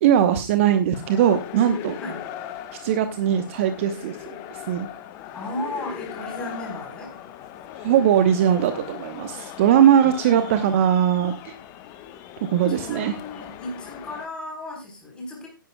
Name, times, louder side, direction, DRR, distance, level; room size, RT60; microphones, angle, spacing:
voice 1, 0.0-2.0 2.8-4.4 4.7-4.9 7.8-11.5 12.5-13.1, right 9 dB, 35° right, 8 dB, 1.0 m, -20 dB
sound 1, 0.9-14.3, left 11 dB, 25° left, 1.1 m, -39 dB
voice 2, 5.3-7.1 10.0-10.7 12.7-15.5, left 1 dB, 10° left, 0 dB, 4.0 m, -35 dB
16.5 x 10.5 x 2.3 m, 0.28 s
figure-of-eight pair, 125°, 12 cm